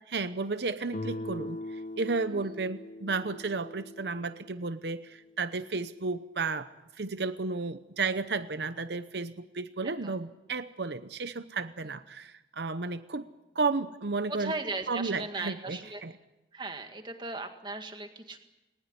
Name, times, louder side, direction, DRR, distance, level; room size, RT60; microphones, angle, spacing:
voice 1, 0.1-6.7 7.0-13.3 13.5-14.5 14.9-16.1, right 4 dB, 75° right, 12 dB, 0.8 m, -33 dB
Guitar, 0.9-5.7, left 1 dB, 45° left, 1.1 m, -41 dB
voice 2, 14.3-16.0 16.5-18.4, right 3 dB, 25° right, 6 dB, 2.0 m, -37 dB
20.0 x 20.0 x 9.7 m, 1.0 s
head